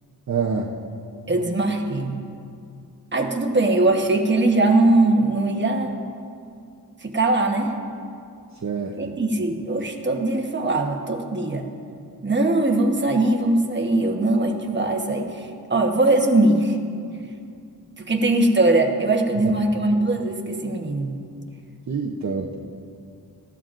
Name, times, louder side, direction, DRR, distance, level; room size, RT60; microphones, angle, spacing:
voice 1, 0.3-0.7 8.6-9.0 19.4-19.5 21.9-22.5, right 5 dB, 45° right, -1 dB, 0.8 m, -26 dB
voice 2, 1.3-2.2 3.1-5.9 7.0-7.7 9.0-11.7 12.2-16.8 18.0-21.1, right 2 dB, 30° right, 2 dB, 1.2 m, -21 dB
19.5 x 14.0 x 2.6 m, 2.4 s
wide cardioid pair, 135°, 38 cm